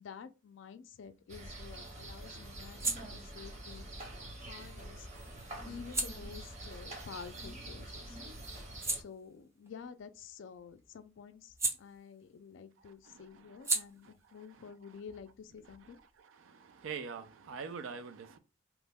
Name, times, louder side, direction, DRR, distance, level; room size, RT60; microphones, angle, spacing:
voice 1, 0.0-3.9 4.4-5.1 5.6-8.2 8.9-16.0, left 6 dB, 65° left, 0.3 m, -50 dB
sound 1, 1.0-7.9 8.3-12.5 12.8-16.2, right 2 dB, 15° right, 0.4 m, -41 dB
sound 2, 1.3-9.0, right 1 dB, 35° right, 0.8 m, -46 dB
voice 2, 16.4-18.4, right 5 dB, 75° right, 0.4 m, -43 dB
2.9 x 2.1 x 3.4 m
head